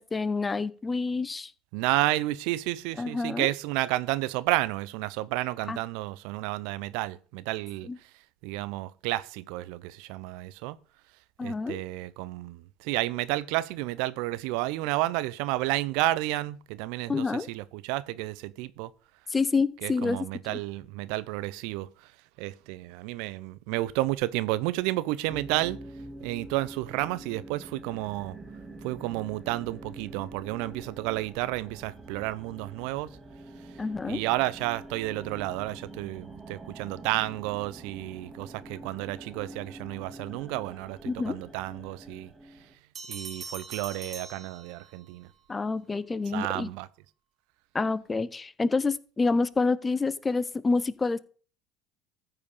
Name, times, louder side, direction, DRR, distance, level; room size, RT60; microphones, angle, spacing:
voice 1, 0.0-1.5 3.0-3.5 5.7-5.8 7.9-8.0 11.4-11.8 17.1-17.5 19.3-20.6 33.8-34.2 41.1-41.4 45.5-46.7 47.7-51.2, left 4 dB, 20° left, 0.7 m, -28 dB
voice 2, 1.7-7.9 8.4-10.8 11.4-18.9 19.8-22.1 22.4-25.8 26.2-28.4 28.8-33.2 34.0-42.3 43.1-45.3 46.3-46.9, right 17 dB, 70° right, 0.7 m, -31 dB
sound 1, 25.3-42.7, right 2 dB, 15° right, 2.5 m, -45 dB
sound 2, 42.9-45.2, right 4 dB, 35° right, 1.6 m, -42 dB
14.0 x 4.8 x 5.5 m
hypercardioid pair, 65°, 0 cm